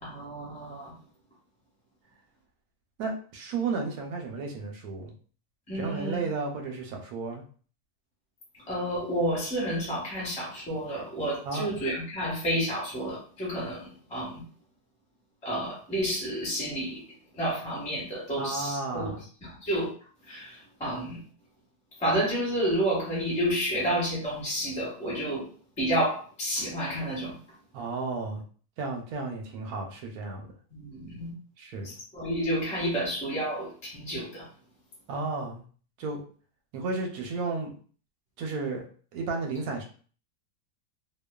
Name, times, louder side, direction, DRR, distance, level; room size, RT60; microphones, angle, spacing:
voice 1, 0.0-0.9 5.7-6.2 8.7-14.4 15.4-17.0 17.4-19.1 19.4-19.9 20.3-21.2 22.0-25.5 25.8-27.4 30.7-31.3 31.8-34.5, right 1 dB, 5° left, -7 dB, 0.6 m, -30 dB
voice 2, 3.0-5.1 5.7-7.4 11.5-11.7 18.4-19.2 27.7-28.4 28.8-30.5 31.6-31.9 35.1-35.6 36.0-36.2 36.7-37.7 38.4-38.9 39.1-39.8, right 3 dB, 70° right, 2 dB, 0.9 m, -33 dB
2.9 x 2.1 x 2.2 m, 0.42 s
omnidirectional pair, 1.9 m